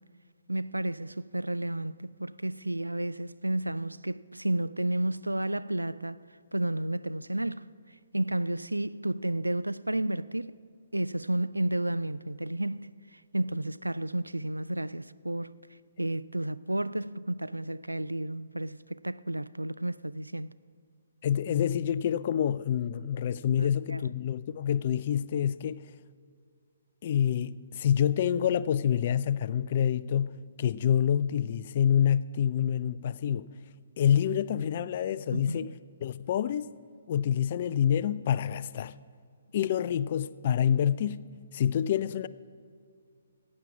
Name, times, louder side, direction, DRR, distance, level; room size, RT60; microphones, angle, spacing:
voice 1, 0.5-6.2 6.5-7.6 8.1-10.6 10.9-12.9 13.3-15.5 16.0-20.5 23.6-24.0 35.3-35.7, right 1 dB, 80° right, 0.3 m, -32 dB
voice 2, 21.2-25.9 27.0-33.5 34.0-35.7 36.0-36.7 37.1-38.9 39.5-41.2 41.5-42.3, left 9 dB, 40° left, 0.3 m, -27 dB
16.0 x 8.5 x 5.9 m
figure-of-eight pair, 130°, 0 cm